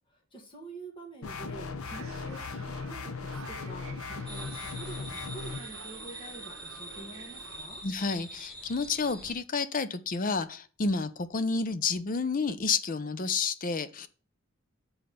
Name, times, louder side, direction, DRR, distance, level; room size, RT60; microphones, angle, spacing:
voice 1, 0.1-7.8, right 3 dB, 25° left, 1 dB, 1.6 m, -47 dB
sound 1, 1.2-5.6, left 4 dB, 80° left, 0.8 m, -38 dB
sound 2, 1.9-7.7, right 4 dB, 70° right, 1.0 m, -49 dB
sound 3, 4.3-9.4, right 1 dB, ahead, 1.6 m, -44 dB
voice 2, 7.8-14.1, left 4 dB, 40° left, 13 dB, 0.6 m, -30 dB
7.8 x 4.0 x 6.7 m, 0.39 s
head